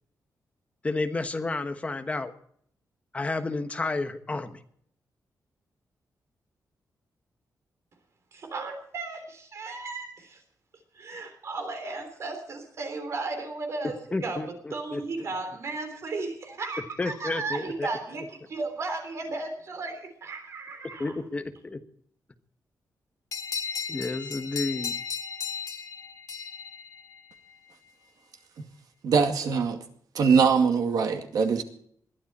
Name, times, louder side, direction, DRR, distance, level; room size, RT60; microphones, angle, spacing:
voice 1, 0.8-2.3 3.1-4.6 14.1-15.0 17.0-17.9 21.0-21.8 23.9-24.9, left 3 dB, 20° left, 1.2 m, -31 dB
voice 2, 8.3-10.4 10.9-21.2, right 3 dB, 45° right, 3.3 m, -35 dB
sound 1, 23.3-27.5, left 6 dB, 60° left, 1.8 m, -35 dB
voice 3, 29.0-29.8 30.1-31.6, right 5 dB, 70° right, 2.2 m, -22 dB
21.0 x 12.5 x 4.2 m
wide cardioid pair, 180°, 7 cm